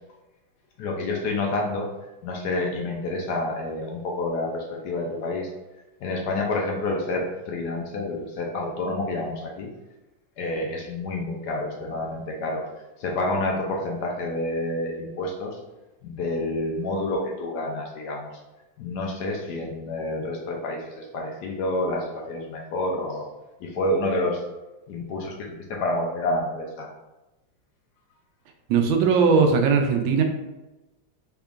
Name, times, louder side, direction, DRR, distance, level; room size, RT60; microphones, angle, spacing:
voice 1, 0.8-1.9 2.2-5.5 6.0-9.7 10.4-12.6 13.0-15.6 16.0-18.4 18.8-23.3 23.6-24.4 24.9-26.9, left 2 dB, 70° left, 0 dB, 1.0 m, -28 dB
voice 2, 28.7-30.2, right 5 dB, 90° right, 4 dB, 1.4 m, -19 dB
3.6 x 3.5 x 2.4 m, 1.0 s
omnidirectional pair, 2.1 m